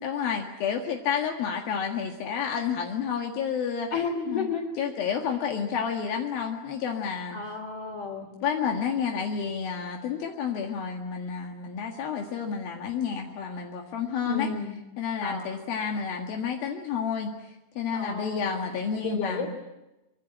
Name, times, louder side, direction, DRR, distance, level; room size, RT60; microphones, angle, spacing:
voice 1, 0.0-3.9 4.3-4.5 4.8-7.4 8.4-14.5 15.0-17.3 17.8-19.5, left 7 dB, 75° left, 1 dB, 3.7 m, -30 dB
voice 2, 3.9-4.7 7.3-8.3 14.3-14.8 15.2-15.5 17.9-19.5, left 4 dB, 40° left, -2 dB, 4.4 m, -32 dB
25.0 x 24.5 x 8.8 m, 0.97 s
omnidirectional pair, 4.3 m